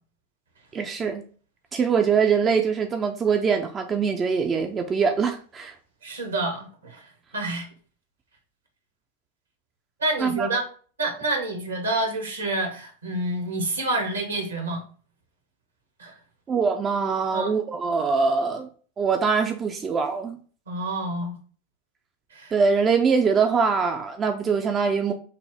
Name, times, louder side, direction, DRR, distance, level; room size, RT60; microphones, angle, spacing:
voice 1, 0.7-1.2 1.7-5.7 10.2-10.5 16.5-18.7 19.0-20.4 22.5-25.1, right 5 dB, 25° right, 0.4 m, -23 dB
voice 2, 6.0-7.0 7.3-7.7 10.0-10.6 11.0-14.8 16.0-16.1 17.3-17.5 20.7-21.4 22.3-22.5, right 2 dB, 70° right, 1.2 m, -28 dB
5.5 x 2.0 x 3.6 m
figure-of-eight pair, 90°, 0 cm